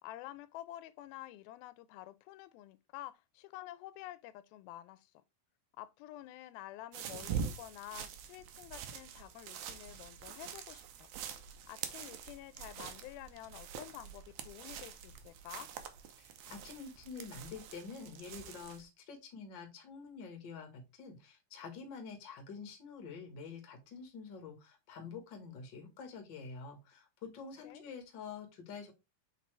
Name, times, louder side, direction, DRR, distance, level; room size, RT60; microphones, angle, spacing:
voice 1, 0.0-5.2 5.8-11.1 11.7-15.7 27.6-27.8, left 14 dB, 85° left, 2.4 m, -49 dB
sound 1, 6.9-18.8, right 7 dB, 85° right, 1.5 m, -45 dB
voice 2, 16.2-28.9, left 5 dB, 55° left, 1.3 m, -47 dB
6.7 x 4.4 x 3.2 m
omnidirectional pair, 4.2 m